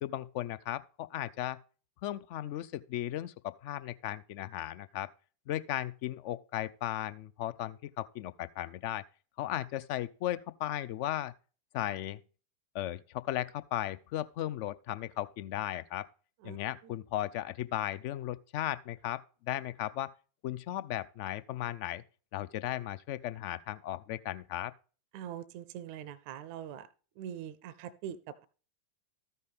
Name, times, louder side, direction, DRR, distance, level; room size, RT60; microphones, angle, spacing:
voice 1, 0.0-1.6 2.0-5.1 5.5-9.0 9.4-11.3 11.7-12.2 12.7-16.1 16.4-20.1 20.4-22.0 22.3-24.7, left 13 dB, 45° left, 0.4 m, -36 dB
voice 2, 25.1-26.9 27.2-28.5, right 10 dB, 45° right, 0.5 m, -43 dB
13.5 x 5.4 x 3.4 m
figure-of-eight pair, 90°, 0 cm